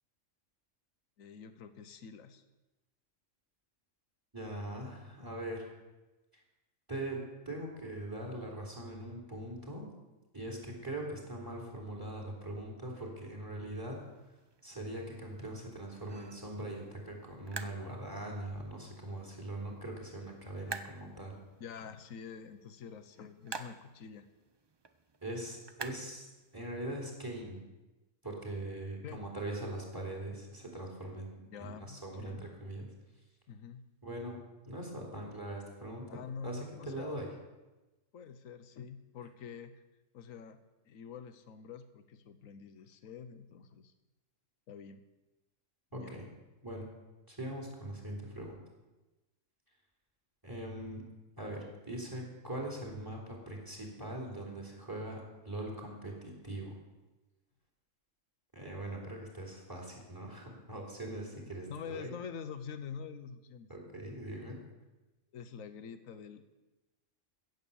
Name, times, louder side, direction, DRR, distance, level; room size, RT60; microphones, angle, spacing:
voice 1, 1.2-2.4 21.6-24.2 29.0-29.2 31.5-32.5 33.5-33.9 36.1-37.2 38.1-39.8 40.1-43.9 44.7-45.0 45.9-46.2 61.7-63.7 65.3-66.4, left 6 dB, 80° left, 10 dB, 1.3 m, -46 dB
voice 2, 4.3-5.7 6.3-6.4 6.9-7.2 7.4-9.8 10.3-14.0 14.6-21.4 25.2-26.3 26.5-27.6 28.2-32.9 34.0-37.3 45.9-46.2 46.6-46.9 47.3-48.6 50.4-51.0 51.4-56.7 58.5-62.1 63.7-64.6, right 1 dB, 15° right, -1 dB, 3.3 m, -41 dB
sound 1, 13.6-26.9, right 4 dB, 30° right, 0.4 m, -50 dB
16.0 x 8.1 x 7.0 m, 1.1 s
omnidirectional pair, 1.4 m